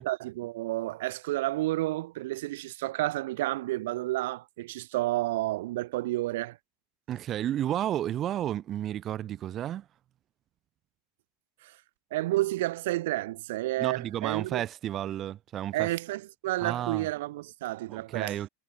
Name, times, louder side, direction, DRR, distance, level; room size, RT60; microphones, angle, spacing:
voice 1, 0.0-6.6 11.6-11.8 12.1-14.6 15.7-18.4, right 17 dB, 75° right, 0.6 m, -31 dB
voice 2, 7.1-9.9 13.8-15.9 16.6-17.1 17.9-18.5, right 11 dB, 30° right, 1.4 m, -32 dB
supercardioid pair, 150°, 0 cm